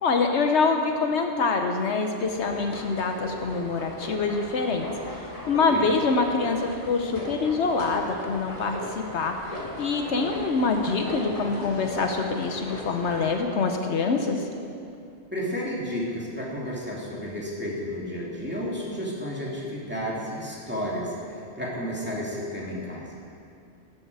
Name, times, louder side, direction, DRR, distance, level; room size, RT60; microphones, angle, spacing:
voice 1, 0.0-4.9 5.1-14.5, left 4 dB, 75° left, 4 dB, 1.1 m, -25 dB
sound 1, 2.2-13.4, equal, 30° left, 1.7 m, -38 dB
voice 2, 15.3-23.1, equal, 10° right, -5 dB, 2.3 m, -32 dB
12.0 x 11.0 x 4.7 m, 2.5 s
omnidirectional pair, 1.2 m